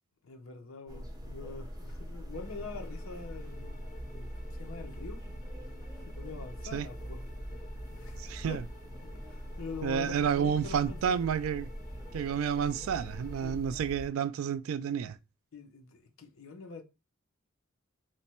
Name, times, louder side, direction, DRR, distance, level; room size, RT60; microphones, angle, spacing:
voice 1, 0.2-3.8 4.1-5.2 6.0-7.2 7.9-8.6 9.1-11.2 13.4-14.0 15.5-16.8, left 4 dB, 75° left, 0.7 m, -45 dB
sound 1, 0.9-14.1, equal, 20° right, 0.9 m, -42 dB
sound 2, 2.3-13.6, left 3 dB, 40° left, 0.5 m, -56 dB
voice 2, 8.2-8.6 9.8-11.7 12.1-15.2, right 7 dB, 75° right, 0.3 m, -30 dB
3.2 x 2.1 x 4.2 m
head